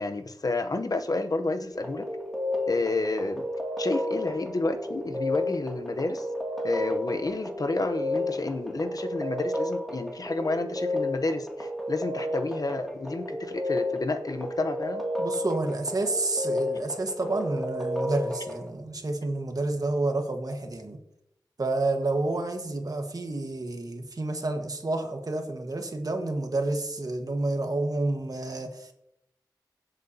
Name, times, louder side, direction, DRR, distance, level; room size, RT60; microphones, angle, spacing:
voice 1, 0.0-2.0 2.7-3.5 3.8-6.3 6.6-15.0, left 2 dB, 55° left, 7 dB, 0.9 m, -30 dB
sound 1, 1.7-18.7, left 1 dB, ahead, 2.4 m, -32 dB
voice 2, 15.2-21.0 21.6-28.9, right 2 dB, 55° right, 5 dB, 1.5 m, -29 dB
17.0 x 8.0 x 2.8 m, 0.79 s
wide cardioid pair, 80°, 7 cm